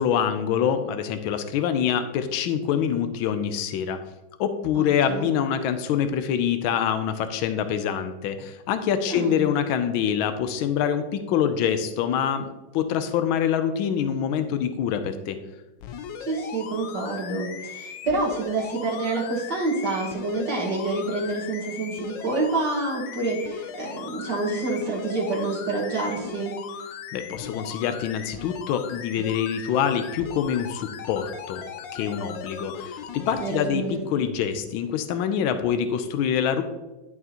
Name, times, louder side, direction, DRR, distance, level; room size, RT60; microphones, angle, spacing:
voice 1, 0.0-4.0 4.4-15.4 27.1-31.6 31.9-36.6, left 8 dB, 90° left, 9 dB, 1.4 m, -25 dB
voice 2, 4.8-5.3 9.1-9.4 16.2-26.6 33.4-34.0, right 3 dB, 60° right, -4 dB, 2.0 m, -28 dB
sound 1, 15.8-33.7 34.3-34.4, left 7 dB, 70° left, 1.3 m, -38 dB
11.0 x 6.7 x 2.9 m, 1.1 s
omnidirectional pair, 2.2 m